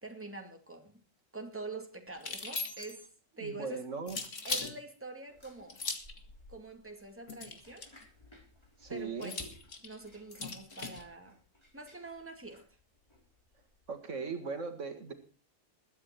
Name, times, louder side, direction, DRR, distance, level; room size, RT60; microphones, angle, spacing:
voice 1, 0.0-1.0 1.3-3.1 3.4-3.9 4.4-5.8 6.5-7.9 8.9-9.5 9.8-11.4 11.7-12.7, right 3 dB, 10° right, 2.3 m, -45 dB
sound 1, 2.2-3.1 4.1-4.7 5.7-6.2 7.3-8.0 9.2-11.0, left 4 dB, 70° left, 2.3 m, -39 dB
voice 2, 3.4-4.2 8.8-9.3 13.9-15.1, right 4 dB, 70° right, 2.2 m, -38 dB
sound 2, 5.3-13.9, left 1 dB, 20° left, 4.7 m, -59 dB
21.0 x 9.3 x 4.4 m
omnidirectional pair, 1.3 m